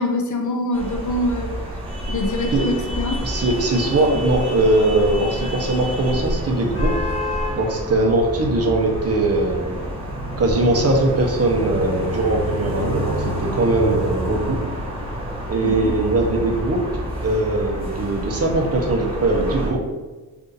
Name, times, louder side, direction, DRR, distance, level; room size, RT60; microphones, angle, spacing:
voice 1, 0.0-1.6 2.1-3.2 15.6-15.9, left 2 dB, 50° left, 4 dB, 0.6 m, -24 dB
sound 1, 0.7-19.7, equal, 15° right, 1.2 m, -29 dB
sound 2, 2.2-7.5, equal, 85° left, 0.8 m, -31 dB
voice 2, 3.2-6.9 7.5-9.8 10.4-14.6 15.5-16.8 17.2-19.8, right 2 dB, 40° right, 1 dB, 0.7 m, -20 dB
2.7 x 2.5 x 3.9 m, 1.2 s
cardioid pair, 70°, 37 cm